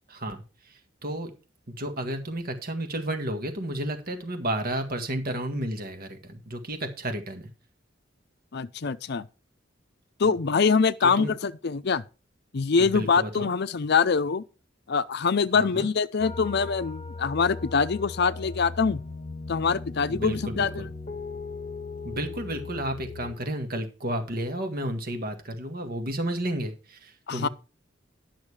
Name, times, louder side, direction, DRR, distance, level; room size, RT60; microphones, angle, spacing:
voice 1, 0.1-1.3 1.7-7.5 10.2-10.3 11.0-11.3 12.8-13.5 15.5-15.9 20.1-20.9 22.0-27.5, right 1 dB, 50° right, 1.7 m, -32 dB
voice 2, 8.5-9.2 10.2-12.0 12.5-14.4 14.9-19.0 19.5-20.9 27.3-27.5, left 5 dB, 60° left, 0.6 m, -24 dB
sound 1, 16.2-23.4, left 3 dB, 40° left, 1.1 m, -38 dB
10.5 x 6.4 x 4.8 m
head